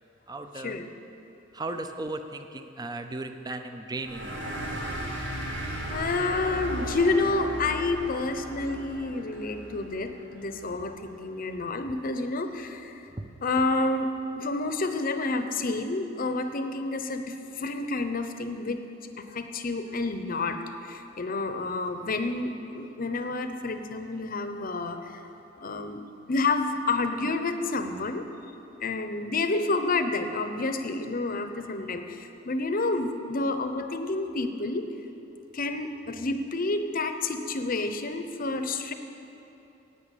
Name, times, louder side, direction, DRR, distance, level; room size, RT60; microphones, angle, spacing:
voice 1, 0.3-0.8 1.5-4.5 13.1-13.3, right 2 dB, 20° right, 7 dB, 0.6 m, -36 dB
sound 1, 4.0-11.1, right 1 dB, 65° right, 1.9 m, -36 dB
voice 2, 5.9-12.9 13.4-14.1 14.4-18.8 19.2-25.2 25.5-26.0 26.3-28.2 28.8-34.9 35.5-38.9, left 3 dB, 45° left, 8 dB, 0.8 m, -29 dB
11.0 x 8.7 x 8.3 m, 2.9 s
head